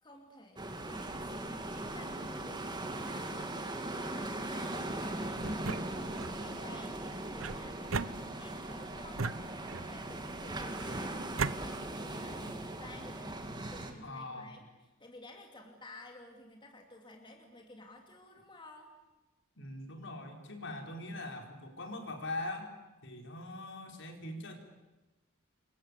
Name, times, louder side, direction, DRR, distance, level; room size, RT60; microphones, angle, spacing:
voice 1, 0.0-14.7 15.0-18.9, left 2 dB, 25° left, 2 dB, 2.8 m, -53 dB
sound 1, 0.6-13.9, right 1 dB, 20° right, 2.4 m, -39 dB
sound 2, 5.4-6.4 7.4-8.7 9.2-10.0 10.8-11.6, right 4 dB, 70° right, 0.9 m, -37 dB
voice 2, 14.0-14.5 19.6-22.7 23.0-24.6, left 2 dB, 60° left, 3 dB, 4.9 m, -42 dB
28.5 x 23.5 x 8.4 m, 1.1 s
head